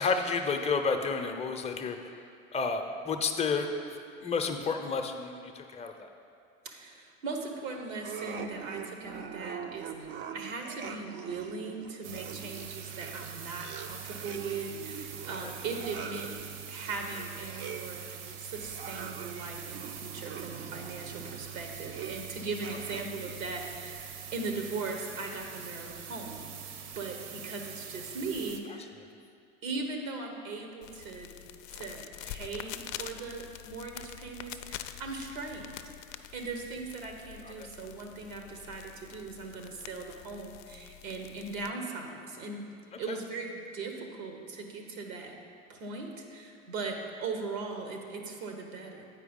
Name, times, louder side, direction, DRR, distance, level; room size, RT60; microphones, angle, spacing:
voice 1, 0.0-2.2 2.5-3.7 4.2-6.1 15.4-15.5 37.4-37.7, left 4 dB, 15° left, 5 dB, 0.5 m, -31 dB
voice 2, 6.6-16.3 16.7-28.9 29.6-31.3 31.7-35.7 36.3-42.6 43.0-45.3 45.7-49.0, right 3 dB, 85° right, 3 dB, 1.2 m, -39 dB
sound 1, 7.9-23.3, right 7 dB, 30° right, 0.4 m, -44 dB
sound 2, 12.0-28.6, right 8 dB, 65° right, 0.9 m, -43 dB
sound 3, 30.8-41.7, left 12 dB, 75° left, 0.5 m, -46 dB
8.6 x 4.7 x 5.2 m, 2.5 s
hypercardioid pair, 100°, 39 cm